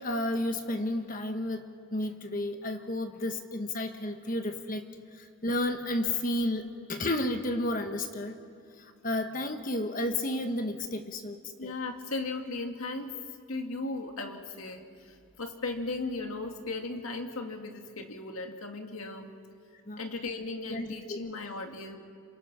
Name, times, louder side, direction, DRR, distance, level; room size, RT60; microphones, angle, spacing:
voice 1, 0.0-4.8 5.1-8.4 8.8-11.7 19.9-20.0 20.7-21.2, left 1 dB, 40° left, 6 dB, 1.2 m, -32 dB
voice 2, 11.6-13.1 13.5-19.3 20.0-22.0, left 3 dB, 90° left, 4 dB, 2.1 m, -37 dB
28.0 x 27.0 x 6.0 m, 2.4 s
head